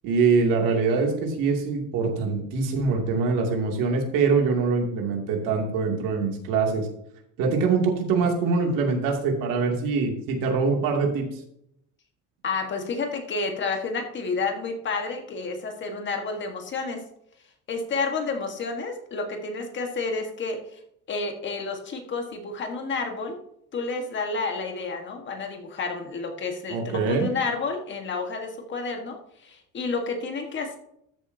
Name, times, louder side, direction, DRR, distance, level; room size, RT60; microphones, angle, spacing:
voice 1, 0.0-6.9 7.4-11.3 26.7-27.3, right 4 dB, 80° right, 1 dB, 2.7 m, -24 dB
voice 2, 12.4-17.0 17.7-20.8 21.1-23.4 23.7-30.8, left 4 dB, 35° left, 3 dB, 1.5 m, -30 dB
13.5 x 7.3 x 2.8 m, 0.73 s
cardioid pair, 160°, 33 cm